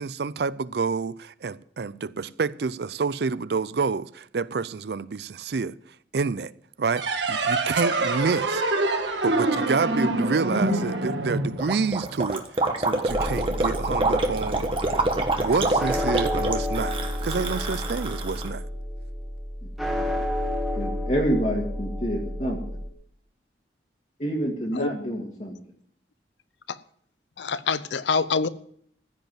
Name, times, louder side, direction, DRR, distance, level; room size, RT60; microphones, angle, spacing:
voice 1, 0.0-5.8 6.1-6.5 6.8-8.6 9.2-14.7 15.4-16.9 17.2-18.7, right 4 dB, 65° right, 0.5 m, -28 dB
sound 1, 6.9-12.2, right 2 dB, 85° right, 1.6 m, -25 dB
Gurgling, 11.6-18.5, right 2 dB, 30° right, 1.4 m, -26 dB
sound 2, 13.1-22.9, left 1 dB, ahead, 1.5 m, -30 dB
voice 2, 20.8-22.6 24.2-25.6, equal, 40° left, 2.2 m, -27 dB
voice 3, 27.4-28.5, left 5 dB, 90° left, 0.6 m, -25 dB
15.0 x 5.3 x 9.2 m
head